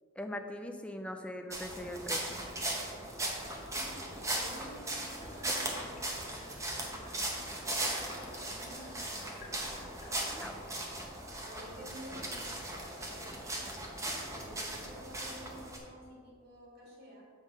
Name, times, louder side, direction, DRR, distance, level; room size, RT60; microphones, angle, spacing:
voice 1, 0.2-2.4 10.3-10.5, left 1 dB, 5° left, 5 dB, 0.3 m, -41 dB
sound 1, 1.5-15.8, right 1 dB, 15° right, 0.8 m, -38 dB
voice 2, 3.7-7.8 8.3-9.5 10.0-11.0 11.4-13.9 14.3-17.3, equal, 55° right, -4 dB, 1.7 m, -52 dB
sound 2, 5.1-10.1, left 3 dB, 35° left, 1.1 m, -55 dB
7.3 x 3.5 x 5.3 m, 2.1 s
head